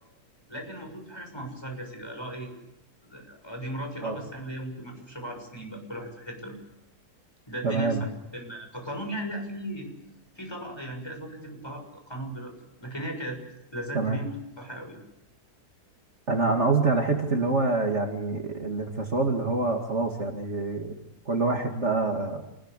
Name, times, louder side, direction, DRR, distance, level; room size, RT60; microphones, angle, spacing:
voice 1, 0.5-2.5 3.0-6.5 7.5-8.0 8.3-9.9 10.4-12.5 12.8-13.4 13.7-15.0, right 1 dB, 15° left, 3 dB, 6.9 m, -37 dB
voice 2, 7.6-8.0 13.9-14.2 16.3-21.0 21.3-22.4, right 3 dB, 45° right, 3 dB, 2.6 m, -26 dB
28.5 x 20.5 x 8.3 m, 0.86 s
omnidirectional pair, 1.7 m